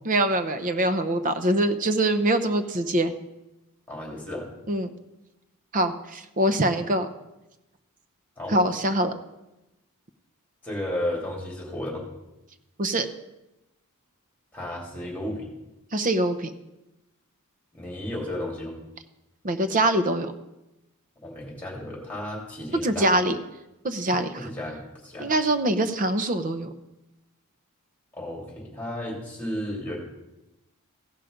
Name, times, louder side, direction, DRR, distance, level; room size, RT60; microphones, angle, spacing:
voice 1, 0.1-3.1 4.7-4.9 5.7-7.1 8.5-9.2 12.8-13.1 15.9-16.5 19.4-20.3 22.8-23.4 23.8-24.4 25.2-26.7, right 1 dB, 40° right, 10 dB, 0.7 m, -24 dB
voice 2, 3.9-4.5 8.4-8.5 10.6-12.0 14.5-15.5 17.7-18.7 21.2-23.1 24.3-25.3 28.1-30.0, left 1 dB, 5° left, -2 dB, 2.9 m, -33 dB
16.0 x 5.7 x 5.1 m, 0.96 s
head